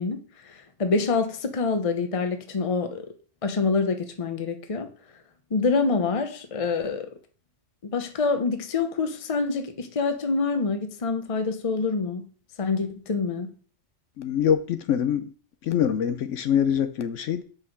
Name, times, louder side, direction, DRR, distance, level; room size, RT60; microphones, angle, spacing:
voice 1, 0.0-3.1 3.4-4.9 5.5-7.1 7.8-12.2 12.6-13.5, left 4 dB, 30° left, 0.8 m, -26 dB
voice 2, 14.2-15.3 15.6-17.4, left 9 dB, 85° left, 1.0 m, -24 dB
5.7 x 5.3 x 6.4 m
omnidirectional pair, 1.2 m